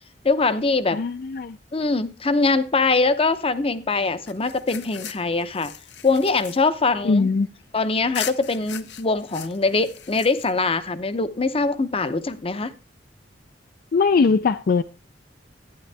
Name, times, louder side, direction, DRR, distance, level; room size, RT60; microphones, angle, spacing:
voice 1, 0.2-1.0 1.7-5.7 6.0-7.3 7.7-12.7, left 3 dB, 35° left, 0.7 m, -22 dB
voice 2, 0.9-1.6 7.0-7.5 13.9-14.8, left 4 dB, 55° left, 0.4 m, -20 dB
sound 1, 4.3-7.7 8.1-10.8, left 9 dB, 70° left, 0.8 m, -38 dB
12.0 x 9.7 x 3.4 m
head